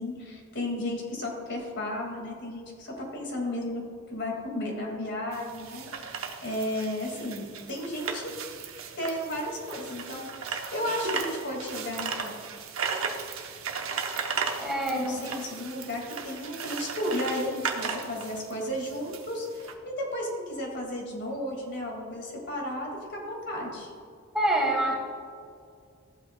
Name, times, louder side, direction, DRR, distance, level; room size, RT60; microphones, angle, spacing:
voice 1, 0.0-3.8 4.1-8.3 9.0-12.3 15.0-23.9, left 1 dB, 55° left, 0 dB, 2.2 m, -34 dB
sound 1, 5.3-19.7, right 5 dB, 70° right, 0.9 m, -36 dB
voice 2, 14.6-15.4 24.3-24.9, right 1 dB, ahead, -2 dB, 1.5 m, -26 dB
14.0 x 8.2 x 2.3 m, 2.2 s
head